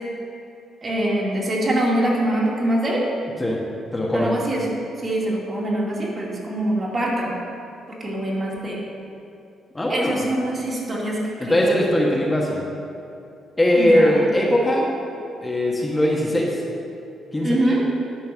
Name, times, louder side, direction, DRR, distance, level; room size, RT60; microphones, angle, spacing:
voice 1, 0.8-3.0 4.1-4.6 5.0-7.3 8.0-8.8 9.9-11.6 13.7-14.2 17.4-17.8, right 1 dB, 35° right, -4 dB, 2.5 m, -24 dB
voice 2, 3.9-4.3 9.7-10.2 11.4-12.6 13.6-14.9 15.4-16.6 17.3-17.6, left 1 dB, 15° left, -3 dB, 1.4 m, -20 dB
11.0 x 4.5 x 7.0 m, 2.6 s
cardioid pair, 90°, 0 cm